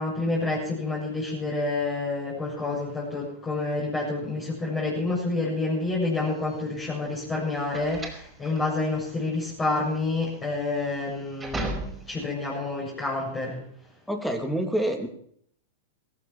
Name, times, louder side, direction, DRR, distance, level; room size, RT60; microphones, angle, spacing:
voice 1, 0.0-13.6, left 3 dB, 20° left, -4 dB, 7.2 m, -28 dB
sound 1, 6.3-12.3, right 2 dB, 10° right, 5.0 m, -37 dB
voice 2, 14.1-15.1, right 1 dB, 5° left, 4 dB, 3.3 m, -27 dB
17.5 x 16.0 x 4.5 m, 0.63 s
hypercardioid pair, 115°, 0 cm